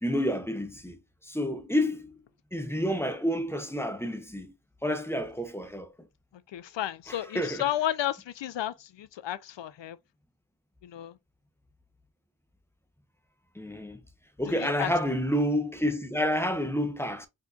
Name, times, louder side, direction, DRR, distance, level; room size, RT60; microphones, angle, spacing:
voice 1, 0.0-1.0 1.3-2.2 2.5-4.5 4.8-5.9 7.3-7.6 13.6-14.0 14.4-17.3, equal, 5° left, 0.6 m, -29 dB
voice 2, 6.5-10.0 10.8-11.2 14.5-14.9, left 12 dB, 65° left, 0.5 m, -32 dB
4.3 x 2.7 x 2.4 m
cardioid pair, 65°, 47 cm